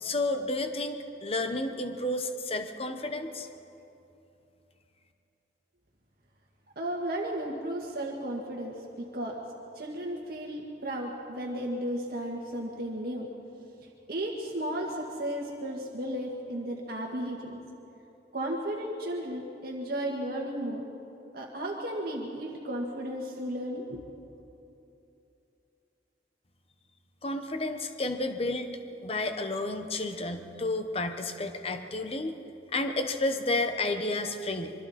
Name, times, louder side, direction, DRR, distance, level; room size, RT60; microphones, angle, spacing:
voice 1, 0.0-3.5 27.2-28.7 29.0-32.3 32.7-34.7, left 2 dB, 35° left, 7 dB, 1.1 m, -31 dB
voice 2, 6.8-8.7 9.1-9.4 9.8-13.3 13.8-17.6 18.3-20.8 21.3-24.1, right 1 dB, 60° right, -1 dB, 1.7 m, -34 dB
25.5 x 23.5 x 4.3 m, 2.8 s
head